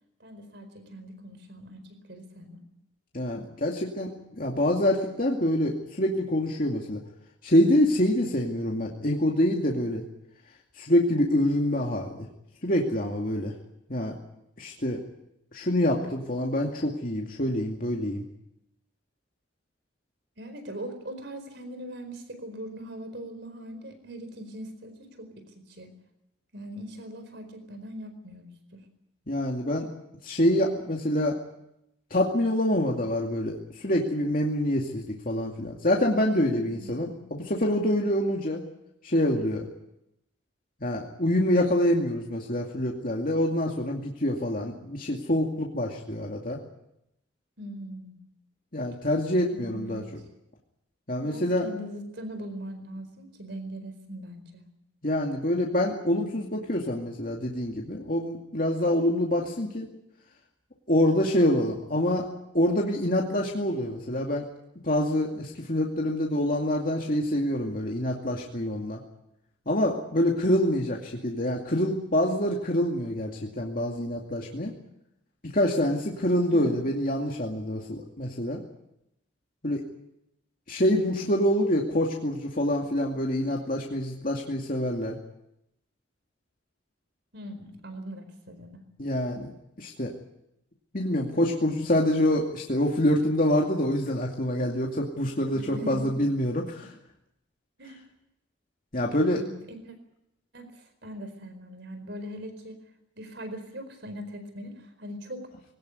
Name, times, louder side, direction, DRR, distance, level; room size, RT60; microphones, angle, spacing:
voice 1, 0.2-2.6 20.4-25.9 26.5-28.8 36.7-37.4 47.6-48.3 49.5-50.1 51.2-54.6 76.5-76.8 87.3-88.8 95.5-96.2 97.8-98.0 99.3-100.0 100.5-102.8 103.1-105.5, equal, 60° right, 9 dB, 4.6 m, -41 dB
voice 2, 3.1-7.0 7.4-10.0 10.8-12.1 12.6-13.5 13.9-14.2 14.6-15.0 15.5-18.2 29.3-29.9 30.2-31.4 32.1-38.6 39.0-39.7 40.8-46.6 48.7-50.0 51.1-51.6 55.0-59.9 60.9-62.3 62.5-64.5 64.8-69.0 69.7-74.7 75.5-78.6 79.6-79.8 80.7-85.2 89.0-90.1 90.9-96.9 98.9-99.4, left 1 dB, 45° left, -1 dB, 2.4 m, -26 dB
21.5 x 18.0 x 9.6 m, 0.83 s
head